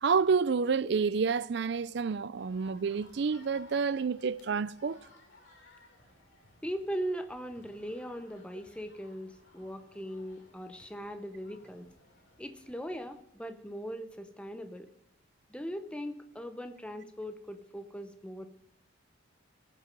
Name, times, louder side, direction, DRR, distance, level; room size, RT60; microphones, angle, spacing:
voice 1, 0.0-5.0, right 5 dB, 55° right, 0.4 m, -29 dB
sound 1, 2.4-13.2, left 2 dB, 65° left, 2.8 m, -60 dB
voice 2, 6.6-11.9 12.4-14.9 15.5-18.5, equal, 5° left, 0.7 m, -39 dB
19.0 x 7.5 x 5.2 m
head